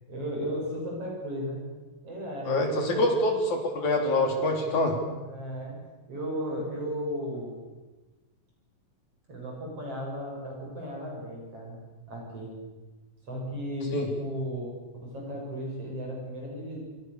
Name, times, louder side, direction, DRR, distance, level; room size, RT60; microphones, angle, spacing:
voice 1, 0.1-1.6 2.0-3.1 5.2-5.8 6.1-7.5 9.3-11.8 12.1-12.5 13.3-14.7 15.0-16.8, equal, 45° right, -1 dB, 8.5 m, -35 dB
voice 2, 2.5-5.0 13.9-14.1, left 1 dB, 60° left, 2 dB, 5.8 m, -25 dB
28.0 x 24.5 x 7.1 m, 1.2 s
omnidirectional pair, 3.8 m